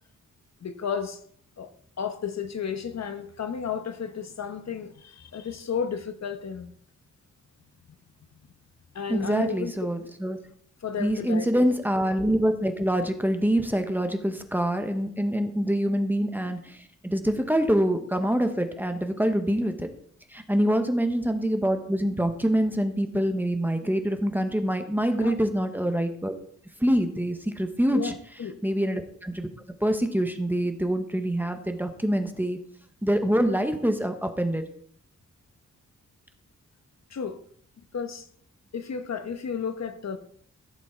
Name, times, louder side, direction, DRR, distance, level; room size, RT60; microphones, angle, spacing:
voice 1, 0.6-1.2 1.6-1.7 2.0-6.7 8.9-9.7 10.8-11.7 25.2-25.4 27.9-28.6 37.1-37.4 37.9-38.3 38.7-40.2, left 7 dB, 65° left, 1.0 m, -33 dB
voice 2, 9.1-10.4 11.0-19.9 20.3-26.3 26.8-28.1 28.6-29.5 29.8-32.6 33.0-34.6, equal, 5° right, 1.0 m, -25 dB
15.0 x 7.2 x 4.4 m
wide cardioid pair, 160°, 29 cm